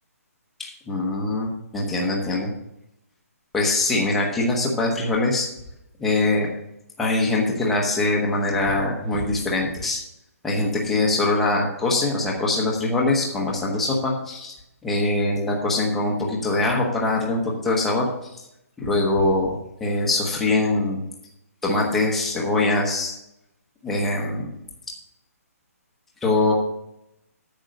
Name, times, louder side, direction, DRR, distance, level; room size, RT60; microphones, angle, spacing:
voice 1, 0.6-2.5 3.5-5.5 6.0-6.5 7.0-10.0 10.4-14.5 14.8-18.1 18.8-21.0 21.6-23.1 23.8-24.5 26.2-26.5, left 2 dB, 5° left, -3 dB, 0.9 m, -23 dB
8.9 x 6.4 x 6.4 m, 0.84 s
hypercardioid pair, 175°, 8 cm